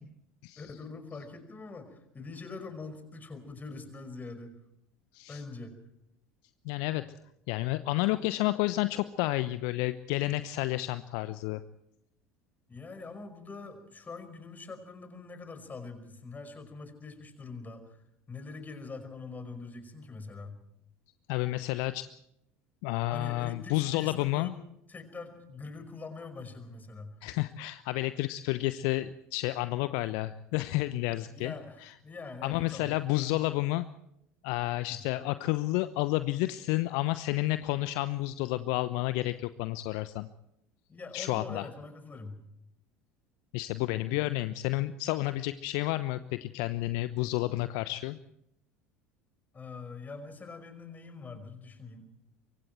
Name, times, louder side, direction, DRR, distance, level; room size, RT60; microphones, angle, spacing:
voice 1, 0.6-4.5 5.3-5.8 12.7-18.0 18.3-20.6 23.1-24.6 24.9-27.1 31.3-33.0 34.9-35.0 40.9-42.4 49.5-52.1, left 3 dB, 20° left, 9 dB, 5.2 m, -44 dB
voice 2, 6.6-7.0 7.5-11.6 21.3-22.1 22.8-24.5 27.2-31.5 31.8-31.9 32.4-33.9 34.4-40.3 41.1-41.7 43.5-48.2, left 18 dB, 55° left, 13 dB, 0.9 m, -30 dB
25.0 x 24.0 x 4.6 m, 0.77 s
figure-of-eight pair, 70°, 8 cm